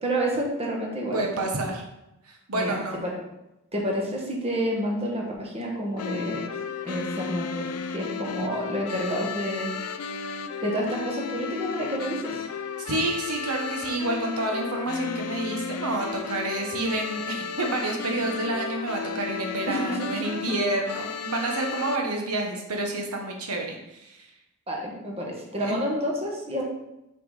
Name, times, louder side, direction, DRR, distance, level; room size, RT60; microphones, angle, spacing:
voice 1, 0.0-1.5 2.5-2.8 3.0-3.1 3.7-6.5 6.8-9.7 10.1-12.4 19.7-20.5 24.7-26.6, equal, 30° right, -2 dB, 1.4 m, -29 dB
voice 2, 1.1-1.8 2.2-3.0 12.8-24.3 25.6-25.8, right 2 dB, 80° right, 1 dB, 1.1 m, -29 dB
sound 1, 6.0-22.0, left 6 dB, 80° left, 0.5 m, -34 dB
5.9 x 5.7 x 4.1 m, 0.90 s
head